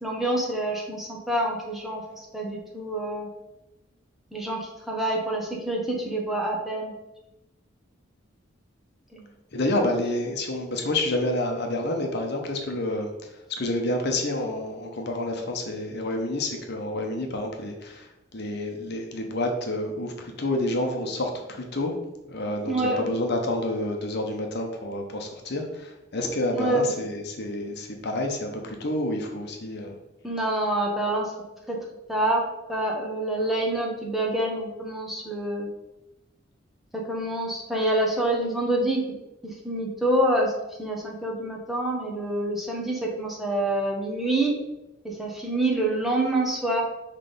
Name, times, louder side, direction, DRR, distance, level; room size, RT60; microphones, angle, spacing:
voice 1, 0.0-3.3 4.3-6.9 9.1-9.2 22.7-23.1 26.5-26.9 30.2-31.3 31.7-31.8 32.1-35.7 36.9-39.0 39.4-40.5 40.8-44.6 45.0-46.8, right 1 dB, ahead, -2 dB, 1.0 m, -27 dB
voice 2, 9.5-21.9 22.2-30.0, left 1 dB, 55° left, 3 dB, 0.9 m, -29 dB
5.9 x 3.3 x 5.2 m, 0.97 s
head